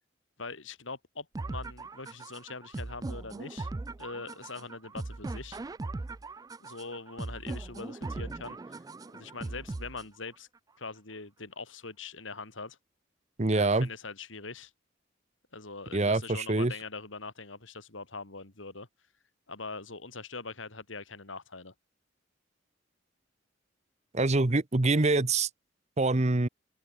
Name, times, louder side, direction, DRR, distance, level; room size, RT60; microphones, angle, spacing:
voice 1, 0.4-3.7 4.0-5.6 6.6-8.8 9.1-10.5 10.8-12.8 13.5-14.7 15.5-18.9 19.5-21.7, left 4 dB, 80° left, 3.3 m, -42 dB
sound 1, 1.3-10.3, right 2 dB, 20° right, 0.3 m, -39 dB
voice 2, 13.4-13.9 15.9-16.7 24.1-25.5 26.0-26.5, right 2 dB, 35° right, 1.0 m, -25 dB
open air
head